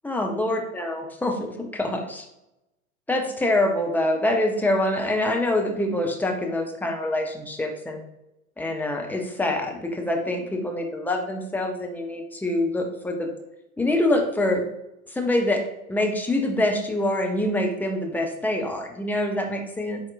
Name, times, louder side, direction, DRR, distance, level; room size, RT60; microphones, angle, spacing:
voice 1, 0.0-2.3 3.1-8.0 8.6-13.3 13.8-14.6 15.1-15.6 15.9-20.0, left 1 dB, 5° left, 2 dB, 0.6 m, -25 dB
8.7 x 4.4 x 2.5 m, 0.88 s
figure-of-eight pair, 95°, 44 cm